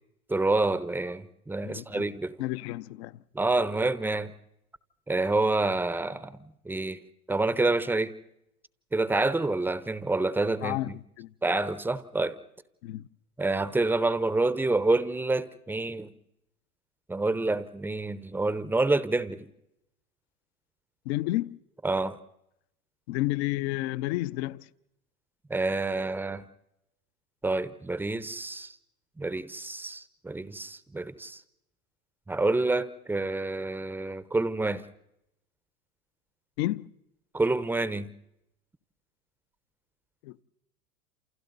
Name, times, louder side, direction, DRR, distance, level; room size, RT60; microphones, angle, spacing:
voice 1, 0.3-2.4 3.3-4.3 5.1-6.4 6.7-7.0 7.3-8.1 8.9-11.0 11.4-12.3 13.4-16.1 17.1-19.5 21.8-22.2 25.5-26.4 27.4-28.7 29.2-31.4 32.3-34.8 37.3-38.1, right 2 dB, 5° right, 0.8 m, -28 dB
voice 2, 1.6-2.1 2.4-3.2 10.6-11.3 12.8-13.1 21.1-21.6 23.1-24.7 36.6-36.9 40.2-40.4, left 17 dB, 45° left, 0.8 m, -31 dB
28.5 x 28.5 x 4.0 m
hypercardioid pair, 110°, 44 cm